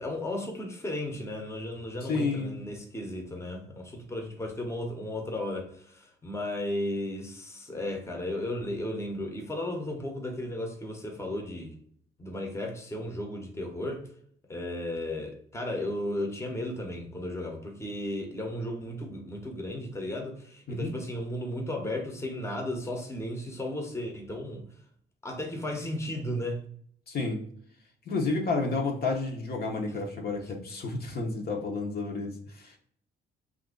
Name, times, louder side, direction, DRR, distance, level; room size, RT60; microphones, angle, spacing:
voice 1, 0.0-11.7 12.2-14.1 14.5-24.6 25.2-26.6, left 1 dB, 15° left, 0.8 m, -34 dB
voice 2, 2.0-2.5 20.7-20.9 27.1-27.4 28.1-32.8, left 3 dB, 50° left, 0.8 m, -31 dB
2.7 x 2.5 x 3.7 m
cardioid pair, 90°, 20 cm